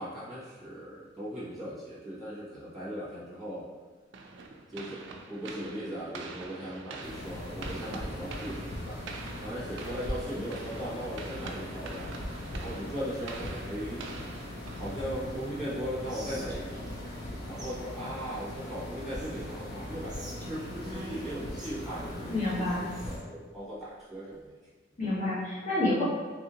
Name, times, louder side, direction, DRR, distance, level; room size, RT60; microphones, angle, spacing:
voice 1, 0.0-3.6 4.7-9.0 9.4-12.1 12.5-14.0 14.7-16.9 17.4-24.5, equal, ahead, -11 dB, 1.3 m, -38 dB
sound 1, 4.1-15.4, right 3 dB, 75° right, 0.4 m, -45 dB
sound 2, 7.0-23.2, left 1 dB, 60° left, 0.7 m, -40 dB
Whispering, 16.1-17.3 17.6-17.7 18.0-19.5 20.1-23.2, equal, 20° right, 0.6 m, -47 dB
voice 2, 22.3-22.9 25.0-26.0, left 2 dB, 40° left, -9 dB, 1.2 m, -29 dB
3.1 x 2.7 x 2.8 m, 1.4 s
head